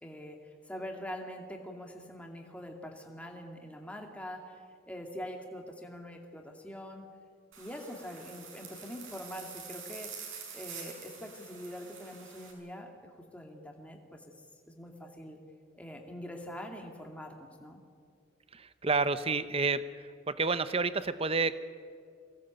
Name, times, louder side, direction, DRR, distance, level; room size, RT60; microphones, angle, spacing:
voice 1, 0.0-7.1 7.6-10.2 10.5-14.2 14.7-15.4 15.7-17.8, equal, 5° left, 2 dB, 2.3 m, -44 dB
sound 1, 7.5-12.5, right 6 dB, 75° right, 6.2 m, -46 dB
voice 2, 18.5-19.9 20.3-21.6, right 4 dB, 30° right, 13 dB, 0.8 m, -29 dB
23.5 x 18.5 x 9.0 m, 2.2 s
head